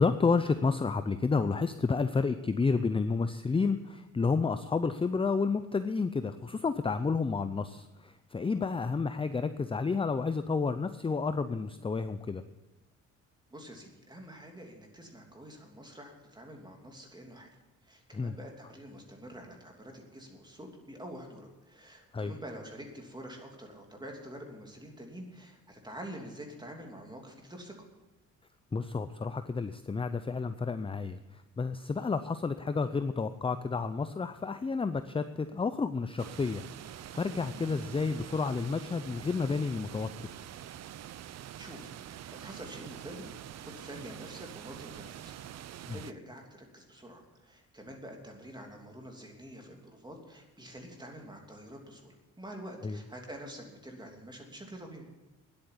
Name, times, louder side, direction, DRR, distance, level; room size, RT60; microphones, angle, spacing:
voice 1, 0.0-12.4 18.1-18.3 22.1-22.3 28.7-36.6 37.1-40.1 45.9-46.0 52.8-53.0, left 4 dB, 20° left, 11 dB, 0.6 m, -30 dB
voice 2, 13.5-17.5 17.8-27.7 37.5-37.8 41.6-45.3 45.9-55.1, equal, 15° right, 2 dB, 3.0 m, -47 dB
sound 1, 36.2-46.1, right 11 dB, 60° right, 0.6 m, -45 dB
10.5 x 8.7 x 9.8 m, 1.1 s
cardioid pair, 90°, 30 cm